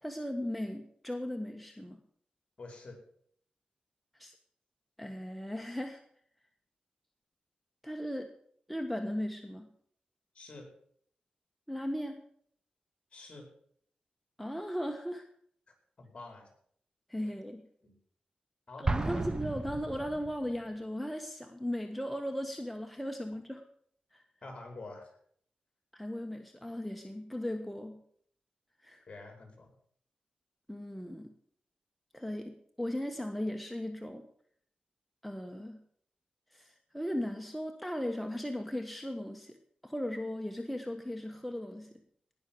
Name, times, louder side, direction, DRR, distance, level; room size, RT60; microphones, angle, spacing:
voice 1, 0.0-2.0 4.1-4.3 5.0-6.0 7.8-8.3 8.7-9.7 11.7-12.2 14.4-15.3 17.1-17.6 18.8-23.6 24.1-24.2 25.9-28.0 28.8-29.0 30.7-31.3 32.1-34.3 35.2-35.8 36.5-39.6 39.8-41.9, equal, ahead, 4 dB, 1.2 m, -37 dB
voice 2, 2.6-3.0 10.4-10.7 13.1-13.5 16.0-16.5 17.8-17.9 18.7-19.2 24.4-25.1 29.1-29.7, left 2 dB, 40° left, 3 dB, 5.2 m, -47 dB
Explosion, 18.9-20.6, right 3 dB, 25° right, 0.9 m, -34 dB
18.5 x 6.4 x 7.7 m, 0.63 s
cardioid pair, 85°, 3 cm